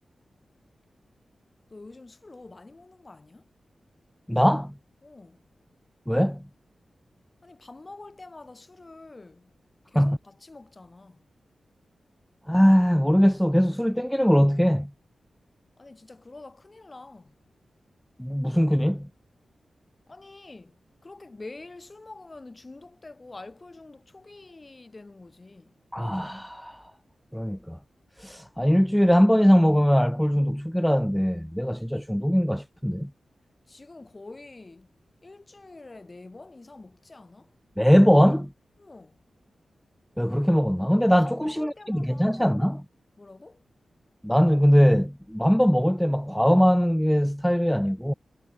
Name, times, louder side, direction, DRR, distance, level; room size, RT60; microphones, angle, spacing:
voice 1, 1.7-3.5 5.0-5.4 7.4-9.5 9.9-11.2 15.8-17.3 20.1-25.7 33.7-34.9 35.2-37.5 38.8-39.2 41.2-42.4 43.2-43.6, left 3 dB, 25° left, 6.8 m, -46 dB
voice 2, 4.3-4.7 6.1-6.4 9.9-10.2 12.5-14.9 18.2-19.1 25.9-26.8 27.3-27.8 28.2-33.1 37.8-38.5 40.2-42.8 44.2-48.1, equal, ahead, 1.7 m, -21 dB
wide cardioid pair, 135°, 0 cm